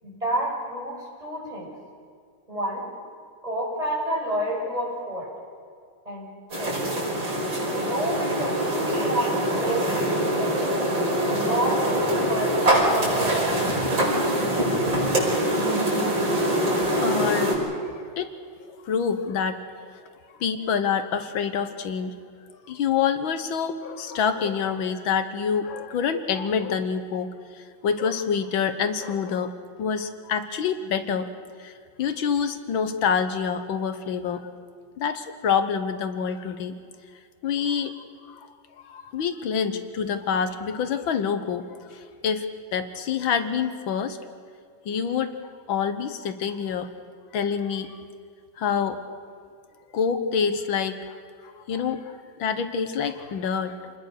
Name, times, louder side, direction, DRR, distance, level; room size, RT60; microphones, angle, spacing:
voice 1, 0.0-1.7 2.5-2.9 3.4-5.3 6.0-6.3 6.6-7.0 7.7-10.8 11.3-13.1, right 1 dB, 20° right, -3 dB, 6.5 m, -30 dB
sound 1, 6.5-17.6, right 1 dB, 75° right, 6.3 m, -24 dB
voice 2, 16.7-17.6 17.8-18.3 18.7-20.0 20.4-22.2 22.6-27.3 27.5-31.3 31.6-34.5 35.0-36.8 37.4-37.9 38.2-38.5 38.8-42.5 42.7-44.2 44.9-45.4 45.7-46.9 47.3-48.0 48.6-49.0 49.9-51.2 51.4-53.9, left 6 dB, 85° left, 9 dB, 1.9 m, -27 dB
28.0 x 20.5 x 6.6 m, 2.2 s
omnidirectional pair, 2.1 m